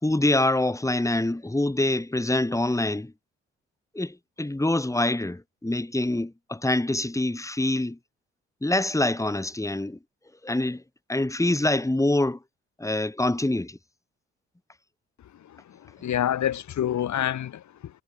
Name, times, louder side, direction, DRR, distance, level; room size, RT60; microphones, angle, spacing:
voice 1, 0.0-3.1 3.9-8.0 8.6-10.0 10.4-10.8 11.1-12.4 12.8-13.8, left 1 dB, 10° left, 2.7 m, -25 dB
voice 2, 15.4-18.0, left 10 dB, 55° left, 2.6 m, -28 dB
figure-of-eight pair, 40°, 35 cm